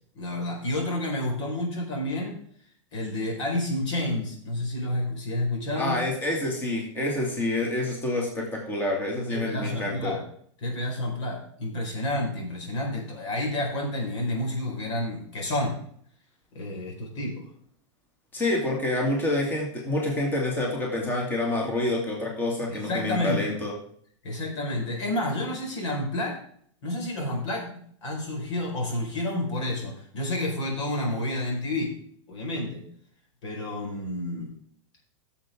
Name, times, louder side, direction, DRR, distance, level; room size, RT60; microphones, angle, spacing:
voice 1, 0.1-2.4 2.9-6.0 9.3-10.2 10.6-15.8 16.5-17.4 22.7-23.5 24.2-26.4 26.8-31.9 32.3-32.8 33.4-34.5, left 1 dB, 75° left, 0 dB, 4.8 m, -30 dB
voice 2, 5.8-10.2 18.3-23.7, left 1 dB, 15° left, -1 dB, 2.0 m, -27 dB
14.5 x 7.2 x 3.6 m, 0.62 s
supercardioid pair, 150°, 15 cm